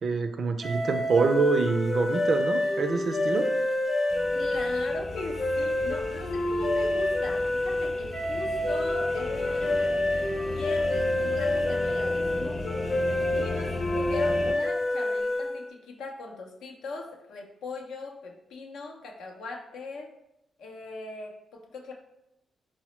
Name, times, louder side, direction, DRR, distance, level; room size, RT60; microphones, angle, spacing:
voice 1, 0.0-3.5, right 4 dB, 55° right, 8 dB, 0.3 m, -26 dB
sound 1, 0.6-15.7, left 1 dB, 50° left, 0.7 m, -28 dB
sound 2, 4.1-14.5, left 2 dB, 30° left, 0.4 m, -36 dB
voice 2, 4.3-10.0 10.4-12.7 13.3-20.1 20.6-21.9, left 3 dB, 90° left, 1 dB, 0.5 m, -39 dB
4.0 x 2.0 x 2.9 m, 0.83 s
cardioid pair, 100°, 0 cm